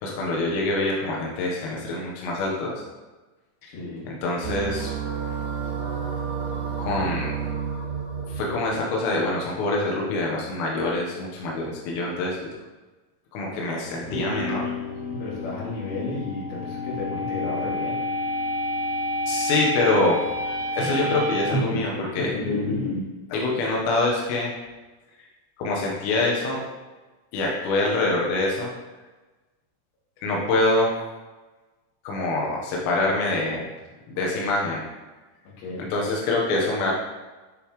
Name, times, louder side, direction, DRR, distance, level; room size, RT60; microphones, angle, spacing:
voice 1, 0.0-2.7 4.1-4.9 6.8-7.3 8.3-12.4 13.3-14.7 19.3-20.2 20.7-22.3 23.3-24.5 25.6-26.6 27.3-28.7 30.2-30.9 32.1-33.7 34.2-34.8 35.9-36.9, left 2 dB, 85° left, -2 dB, 3.9 m, -25 dB
voice 2, 3.7-4.1 15.2-18.0 35.6-35.8, left 2 dB, 55° left, -5 dB, 3.9 m, -33 dB
sound 1, 4.4-8.8, right 8 dB, 85° right, 2.6 m, -31 dB
sound 2, 4.7-9.9, right 2 dB, 50° right, 3.0 m, -39 dB
sound 3, 13.9-23.1, left 1 dB, 40° left, 3.9 m, -29 dB
11.0 x 6.9 x 3.2 m, 1.2 s
omnidirectional pair, 5.8 m